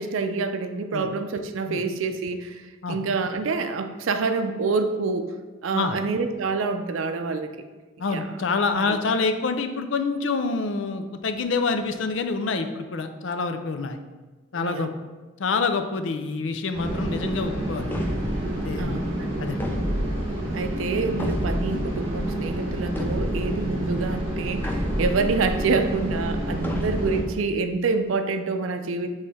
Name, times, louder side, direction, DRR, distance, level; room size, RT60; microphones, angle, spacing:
voice 1, 0.0-5.3 5.6-7.5 8.1-8.3 8.7-8.9 14.5-14.9 18.8-19.3 20.5-29.1, right 4 dB, 90° right, 8 dB, 0.4 m, -27 dB
voice 2, 8.0-14.0 14.5-14.9 15.4-17.9 18.5-19.1 19.4-19.6, left 4 dB, 75° left, 7 dB, 0.5 m, -27 dB
sound 1, 16.7-27.2, right 1 dB, 25° right, 1.2 m, -29 dB
sound 2, 17.9-18.5 19.6-20.3 21.2-21.8 23.0-23.6 24.6-25.3 26.6-27.3, equal, 10° left, 0.4 m, -30 dB
7.3 x 3.2 x 4.2 m, 1.3 s
head